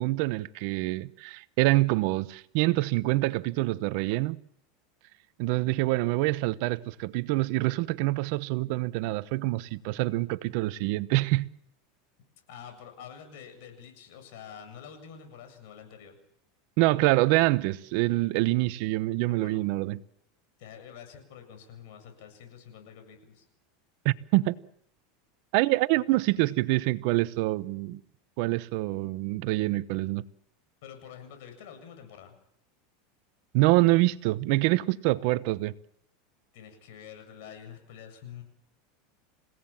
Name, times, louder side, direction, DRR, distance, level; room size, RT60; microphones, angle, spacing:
voice 1, 0.0-4.4 5.4-11.5 16.8-20.0 24.0-24.6 25.5-28.0 28.4-30.2 33.5-35.7, right 19 dB, 60° right, 0.9 m, -26 dB
voice 2, 12.5-16.2 19.3-19.6 20.6-23.4 26.1-26.4 30.8-32.4 35.1-35.5 36.5-38.4, left 8 dB, 70° left, 7.6 m, -47 dB
29.5 x 17.0 x 7.3 m
supercardioid pair, 130°, 0 cm